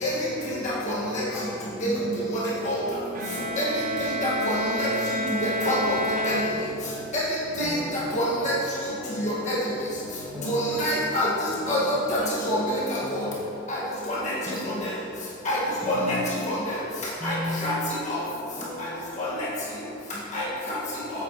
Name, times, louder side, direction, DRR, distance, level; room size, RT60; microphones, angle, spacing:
voice 1, 1.8-2.6 3.4-3.8 7.6-8.2 9.0-9.6 10.3-10.8 11.7-12.4 13.0-13.4 14.5-14.8 15.8-16.2 17.2-17.9 18.6-19.1 20.1-20.4, left 1 dB, ahead, -9 dB, 1.7 m, -36 dB
Bowed string instrument, 3.1-7.2, right 1 dB, 40° right, 0.8 m, -29 dB
voice 2, 4.2-4.9 5.7-5.8 6.3-6.4 7.1-7.2 7.6-7.7 8.1-8.2 10.5-11.3 11.7-12.2 12.5-12.6 13.1-13.2 15.5-15.6 15.9-16.0 17.2-17.3 17.6-17.7 20.3-20.4, left 1 dB, 35° left, -7 dB, 1.7 m, -25 dB
voice 3, 15.8-16.6 17.6-18.2 19.1-19.9 20.6-21.1, left 1 dB, 15° left, -7 dB, 1.7 m, -46 dB
9.0 x 8.2 x 3.0 m, 2.7 s
head